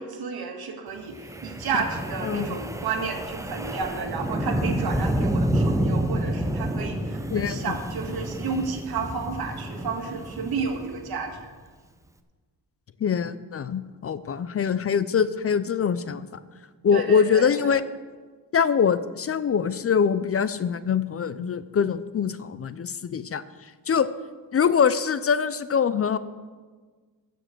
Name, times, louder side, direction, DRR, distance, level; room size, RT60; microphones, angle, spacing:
voice 1, 0.0-11.5 16.9-17.7, right 5 dB, 75° right, 4 dB, 1.8 m, -32 dB
Wind, 1.1-11.4, right 1 dB, 10° right, 0.6 m, -29 dB
voice 2, 2.2-2.6 7.3-7.8 13.0-16.3 16.8-17.8 18.5-23.4 23.9-24.1 24.5-26.2, left 7 dB, 40° left, 14 dB, 0.5 m, -23 dB
14.0 x 5.2 x 7.7 m, 1.4 s
cardioid pair, 125°, 37 cm